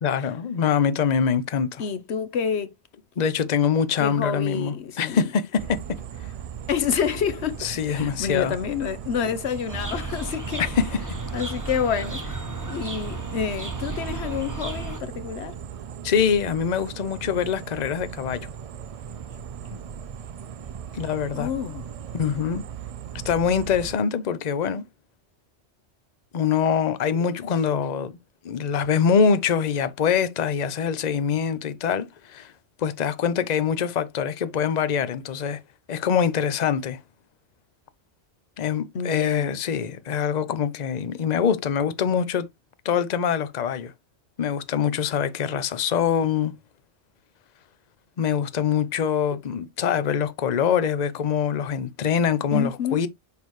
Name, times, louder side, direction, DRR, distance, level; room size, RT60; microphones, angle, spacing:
voice 1, 0.0-1.8 3.2-5.8 7.6-8.5 10.6-10.9 16.0-18.5 21.0-21.5 22.1-22.6 23.2-24.8 26.3-28.1 28.4-32.5 32.8-35.6 35.9-37.0 38.6-42.5 42.8-43.9 44.4-46.5 48.2-53.1, left 7 dB, 45° left, 0.7 m, -24 dB
voice 2, 1.8-2.7 4.0-5.3 6.7-10.7 11.3-15.6 19.7-19.8 21.3-21.8 38.9-39.5 52.5-53.1, left 7 dB, 70° left, 1.1 m, -28 dB
sound 1, 5.6-23.9, right 8 dB, 65° right, 0.3 m, -38 dB
sound 2, 9.7-15.0, right 2 dB, 15° right, 1.0 m, -34 dB
6.3 x 5.2 x 3.1 m
omnidirectional pair, 1.1 m